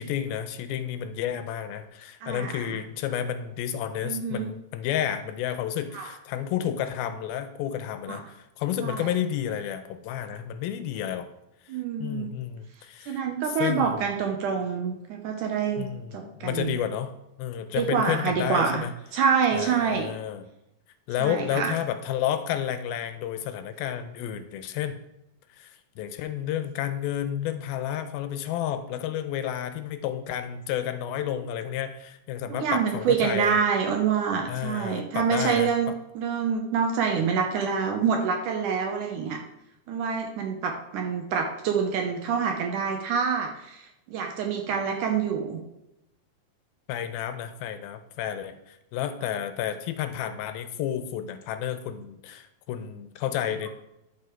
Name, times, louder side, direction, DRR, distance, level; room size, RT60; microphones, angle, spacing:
voice 1, 0.0-11.3 12.0-13.2 13.6-14.1 15.8-17.1 17.4-18.9 19.5-20.5 21.1-25.0 25.6-33.6 34.5-35.7 46.9-53.7, left 10 dB, 80° left, 9 dB, 2.5 m, -31 dB
voice 2, 2.2-2.8 4.0-4.5 5.9-6.1 8.1-8.2 8.8-9.1 11.7-12.3 13.1-15.9 16.1-16.8 17.8-18.8 19.1-20.1 21.2-21.7 32.5-39.4 39.9-45.6, right 6 dB, 70° right, 3 dB, 2.1 m, -26 dB
10.5 x 6.7 x 4.6 m, 0.87 s
omnidirectional pair, 4.3 m